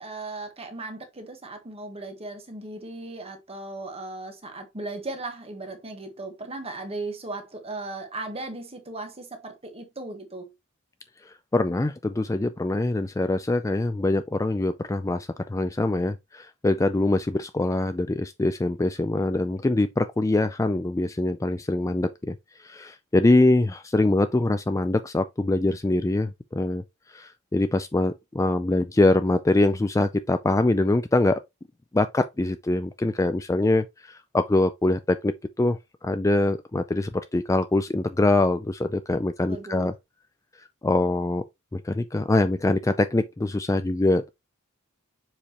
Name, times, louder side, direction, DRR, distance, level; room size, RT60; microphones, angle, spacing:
voice 1, 0.0-10.5 39.5-39.9, right 2 dB, 30° right, 1.5 m, -37 dB
voice 2, 11.3-22.3 22.6-26.8 27.1-31.4 31.9-39.9 40.8-41.4 41.7-44.3, left 2 dB, 15° left, 0.4 m, -24 dB
7.1 x 4.9 x 3.0 m
head